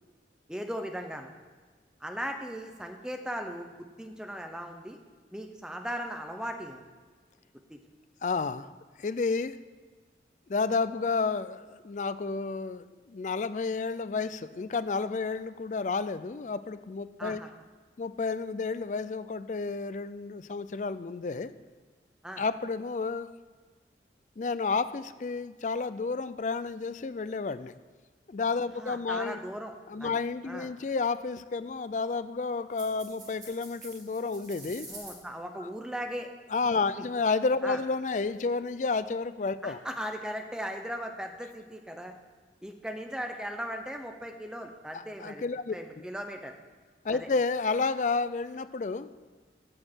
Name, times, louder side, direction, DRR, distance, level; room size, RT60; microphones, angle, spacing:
voice 1, 0.5-1.3 2.0-5.0 5.3-6.8 7.7-7.8 17.2-17.5 22.2-22.4 28.7-29.7 30.0-30.1 30.5-30.7 34.8-36.3 36.9-37.1 37.6-37.8 39.6-42.1 42.6-45.4 45.7-46.6 47.1-47.3, equal, 5° right, 4 dB, 0.8 m, -38 dB
voice 2, 8.2-8.7 9.0-9.6 10.5-17.4 18.0-21.5 22.4-23.3 24.4-27.7 28.3-29.4 29.9-34.9 35.6-35.7 36.5-39.8 44.9-45.7 47.0-49.1, left 4 dB, 45° left, 13 dB, 0.4 m, -31 dB
sound 1, 32.7-35.2, right 2 dB, 20° right, 2.3 m, -47 dB
7.7 x 6.5 x 7.4 m, 1.5 s
head